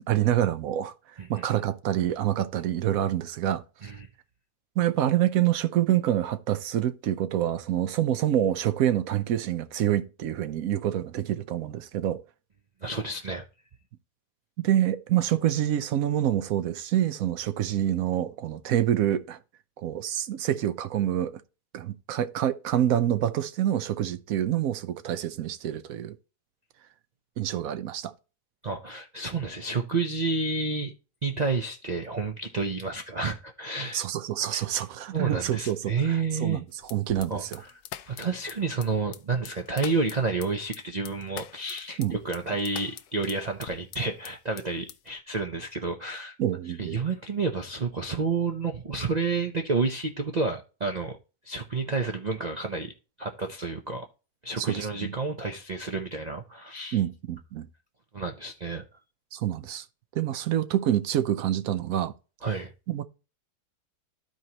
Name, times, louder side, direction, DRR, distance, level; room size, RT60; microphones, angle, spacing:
voice 1, 0.1-0.9 1.3-3.6 4.8-12.2 14.6-19.4 19.8-21.4 21.7-26.1 27.4-28.1 33.9-36.0 36.4-36.6 36.9-37.6 42.0-42.1 46.4-47.0 54.6-55.1 56.9-57.7 59.3-59.8 60.1-62.1 62.9-63.0, right 11 dB, 65° right, 1.0 m, -26 dB
voice 2, 12.8-13.4 28.6-30.9 31.2-34.0 34.5-34.6 35.1-36.6 37.3-37.7 38.1-46.3 46.8-51.2 51.4-54.1 54.4-57.0 58.1-58.8 62.4-62.7, right 4 dB, 45° right, 0.5 m, -30 dB
sound 1, 36.8-44.3 44.6-45.2, left 11 dB, 75° left, 1.1 m, -43 dB
13.0 x 4.6 x 2.9 m
omnidirectional pair, 1.7 m